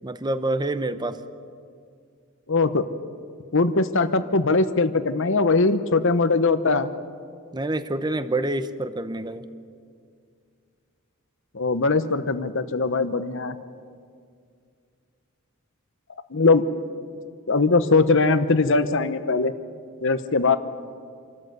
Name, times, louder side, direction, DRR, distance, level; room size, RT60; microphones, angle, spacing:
voice 1, 0.0-1.2 7.5-9.4, right 2 dB, 20° right, 12 dB, 0.8 m, -27 dB
voice 2, 2.5-2.8 3.5-6.9 11.5-13.6 16.3-16.6 17.5-19.5 20.0-20.6, left 3 dB, 65° left, 11 dB, 1.0 m, -21 dB
27.0 x 13.0 x 7.9 m, 2.2 s
head